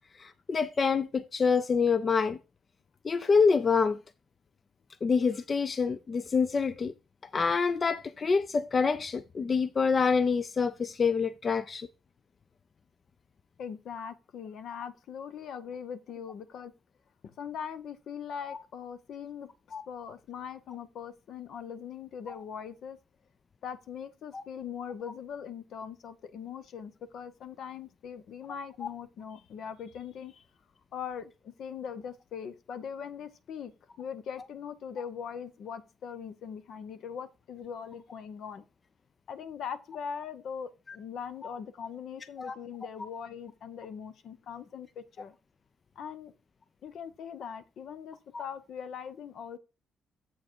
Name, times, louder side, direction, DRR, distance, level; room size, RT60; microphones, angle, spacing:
voice 1, 0.2-2.4 3.0-4.0 5.0-6.9 7.3-11.9 18.5-18.6 19.7-19.8 22.3-22.4 24.3-24.4 28.8-28.9 41.4-41.5 42.4-42.5 48.3-48.4, left 5 dB, 40° left, 0.4 m, -26 dB
voice 2, 13.6-16.7 17.2-19.5 19.9-23.0 23.6-30.4 30.9-33.7 34.0-38.6 39.3-45.3 46.0-46.3 46.8-49.6, left 7 dB, 70° left, 0.8 m, -41 dB
7.6 x 4.6 x 4.5 m
cardioid pair, 90°, 0 cm